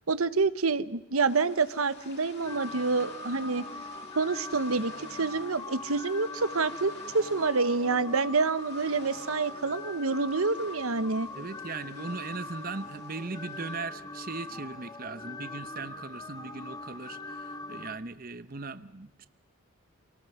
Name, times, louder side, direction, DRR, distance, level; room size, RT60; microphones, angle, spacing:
voice 1, 0.1-3.6 4.1-11.3, right 4 dB, 85° right, 14 dB, 1.1 m, -27 dB
sound 1, 1.3-13.8, left 4 dB, 50° left, 3.5 m, -51 dB
sound 2, 2.4-18.0, left 2 dB, 20° left, 1.3 m, -42 dB
voice 2, 11.3-19.3, right 3 dB, 40° right, 13 dB, 0.9 m, -39 dB
27.5 x 19.0 x 9.2 m, 0.96 s
head